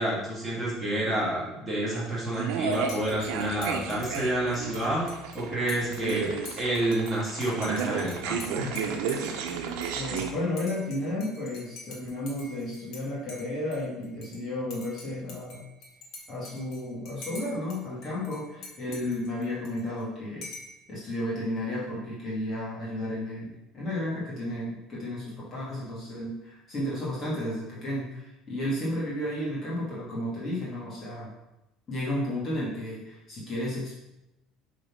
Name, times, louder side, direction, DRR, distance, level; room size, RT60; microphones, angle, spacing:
voice 1, 0.0-5.1 5.3-8.7, right 1 dB, 10° right, -7 dB, 2.5 m, -29 dB
sound 1, 1.9-10.3, right 6 dB, 80° right, 1.0 m, -33 dB
Dishes pots and pans / Cutlery silverware / Chink clink, 2.7-13.0 13.3-14.4 14.7-17.8 18.0-20.0 20.4-20.8, left 3 dB, 45° left, 1.7 m, -45 dB
voice 2, 10.0-15.6 16.3-20.5 20.9-31.3 31.9-34.0, left 1 dB, 25° left, -6 dB, 1.8 m, -33 dB
7.4 x 4.0 x 5.9 m, 0.94 s
cardioid pair, 170°, 0 cm